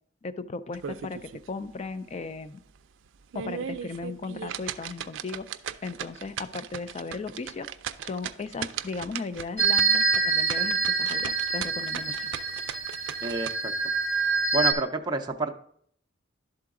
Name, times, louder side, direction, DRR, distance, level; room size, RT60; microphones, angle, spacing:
voice 1, 0.2-2.6 3.3-5.5 5.8-7.7 8.0-12.3, left 4 dB, 35° left, 13 dB, 0.4 m, -36 dB
sound 1, 0.7-1.5 1.9-2.0 2.5-2.6 3.1-13.5, right 8 dB, 85° right, 0.4 m, -37 dB
sound 2, 9.6-14.7, right 4 dB, 65° left, 1.3 m, -26 dB
voice 2, 13.2-13.7 14.5-15.5, right 3 dB, 25° right, 4 dB, 0.5 m, -28 dB
11.5 x 3.8 x 3.6 m, 0.64 s
head